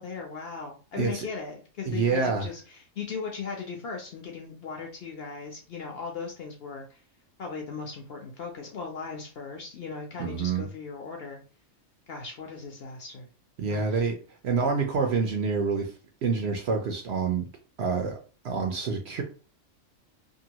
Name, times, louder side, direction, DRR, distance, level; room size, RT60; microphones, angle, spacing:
voice 1, 0.0-7.0 7.4-11.4 12.1-13.3 13.7-14.0, left 5 dB, 60° left, 2 dB, 0.7 m, -38 dB
voice 2, 1.9-2.5 10.2-10.7 13.6-14.1 14.4-15.9 16.2-17.5 17.8-18.2 18.4-19.2, right 5 dB, 60° right, 2 dB, 0.7 m, -27 dB
2.7 x 2.5 x 2.8 m, 0.36 s
omnidirectional pair, 1.4 m